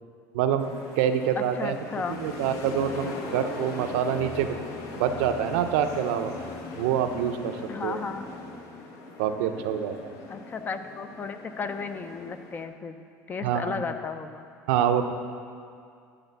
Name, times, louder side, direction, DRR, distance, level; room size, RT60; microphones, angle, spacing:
voice 1, 0.3-1.8 2.1-4.6 5.0-6.3 6.8-7.6 7.8-8.0 9.2-10.2 13.4-13.8 14.7-15.1, right 9 dB, 90° right, 7 dB, 0.5 m, -26 dB
sound 1, 0.6-12.6, left 3 dB, 60° left, 0.9 m, -40 dB
voice 2, 1.4-2.2 7.7-8.3 10.3-13.0 13.3-14.5, left 5 dB, 25° left, 9 dB, 0.5 m, -34 dB
10.5 x 3.5 x 6.8 m, 2.3 s
supercardioid pair, 115°, 7 cm